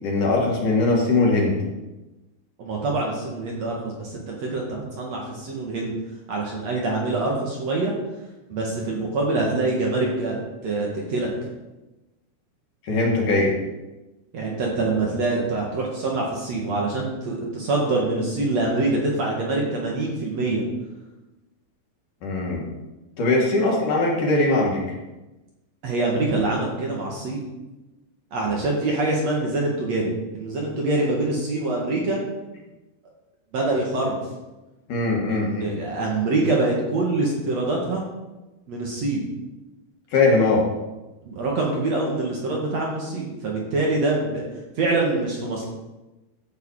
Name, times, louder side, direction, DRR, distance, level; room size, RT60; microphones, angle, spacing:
voice 1, 0.0-1.5 12.8-13.5 22.2-22.7 23.2-24.8 34.9-35.7 40.1-40.6, left 2 dB, 50° left, -2 dB, 2.8 m, -20 dB
voice 2, 2.6-5.9 6.3-7.9 8.5-10.4 10.6-11.3 14.3-20.6 25.8-27.4 28.3-32.2 33.5-34.2 35.3-38.1 38.7-39.3 41.2-44.5 44.8-45.7, right 2 dB, 60° right, -2 dB, 1.8 m, -25 dB
14.5 x 8.1 x 4.9 m, 1.1 s
omnidirectional pair, 5.9 m